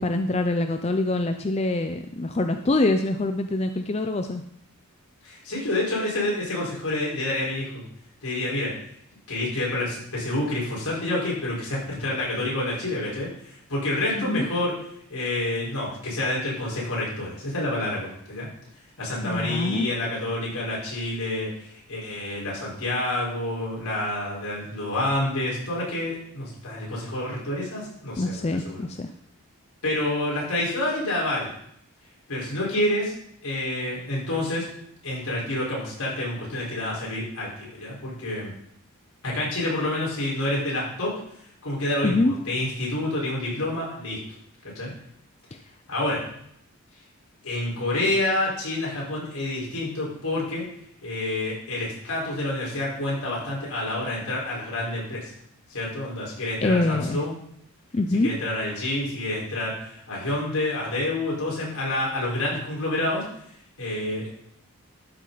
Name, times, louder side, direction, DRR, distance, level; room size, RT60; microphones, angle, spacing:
voice 1, 0.0-4.4 14.2-14.5 19.2-19.9 28.2-29.1 42.0-42.3 56.6-57.2 57.9-58.3, left 2 dB, 30° left, 6 dB, 0.4 m, -24 dB
voice 2, 5.2-7.8 8.2-8.7 9.3-14.7 15.1-18.5 19.0-28.8 29.8-31.5 32.3-33.1 33.4-34.7 35.0-38.5 39.2-41.1 41.6-44.2 44.7-44.9 45.9-46.2 47.4-50.6 51.0-55.3 55.7-57.3 58.2-63.2 63.8-64.4, left 1 dB, 80° left, -5 dB, 4.6 m, -28 dB
12.0 x 6.2 x 4.0 m, 0.70 s
head